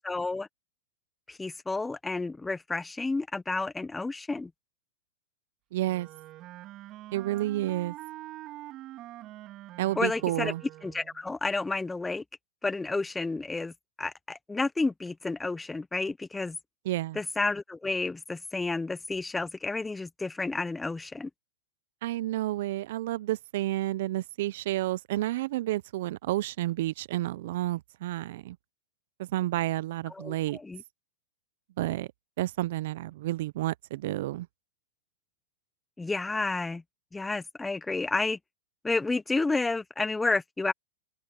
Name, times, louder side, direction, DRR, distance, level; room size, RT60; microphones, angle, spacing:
voice 1, 0.0-0.5 1.3-4.5 10.0-10.5 10.8-12.2 12.6-13.7 14.0-16.6 17.1-21.3 30.1-30.8 36.0-36.8 37.1-38.4 38.8-40.7, left 3 dB, 10° left, 0.8 m, -31 dB
voice 2, 5.7-6.1 7.1-7.9 9.8-10.6 16.9-17.2 22.0-28.6 29.2-30.6 31.8-32.1 32.4-34.5, right 15 dB, 65° right, 0.6 m, -30 dB
Wind instrument woodwind instrument, 5.9-11.2, right 15 dB, 40° right, 3.4 m, -45 dB
open air
hypercardioid pair, 120°, 0 cm